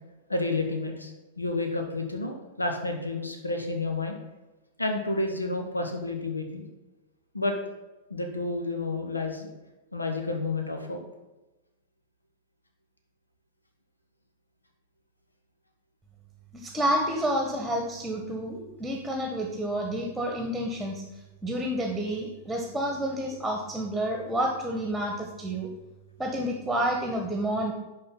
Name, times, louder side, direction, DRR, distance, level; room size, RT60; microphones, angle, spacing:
voice 1, 0.3-1.1 1.4-4.2 4.8-6.6 7.3-7.6 8.1-9.5 9.9-11.1, left 2 dB, 85° left, 4 dB, 1.2 m, -30 dB
voice 2, 16.5-21.0 21.4-25.7 26.2-27.7, right 1 dB, ahead, 1 dB, 1.4 m, -29 dB
11.0 x 4.4 x 5.5 m, 1.1 s
figure-of-eight pair, 95°, 0 cm